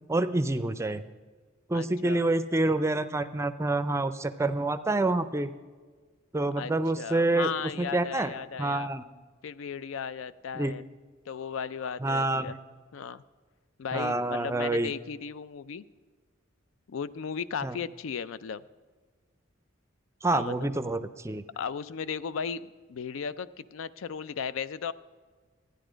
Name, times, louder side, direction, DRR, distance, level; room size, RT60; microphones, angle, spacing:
voice 1, 0.1-1.0 1.7-5.5 6.3-7.5 7.8-8.3 8.6-9.0 10.5-10.7 12.0-12.5 13.9-14.9 17.6-17.8 20.2-21.4, right 2 dB, 15° right, 12 dB, 0.4 m, -27 dB
voice 2, 1.7-2.2 6.6-8.9 9.4-10.8 11.3-12.6 12.9-13.2 13.8-15.8 16.9-18.6 20.3-20.7 21.6-24.9, left 6 dB, 75° left, 16 dB, 0.4 m, -36 dB
13.0 x 10.0 x 5.0 m, 1.4 s
head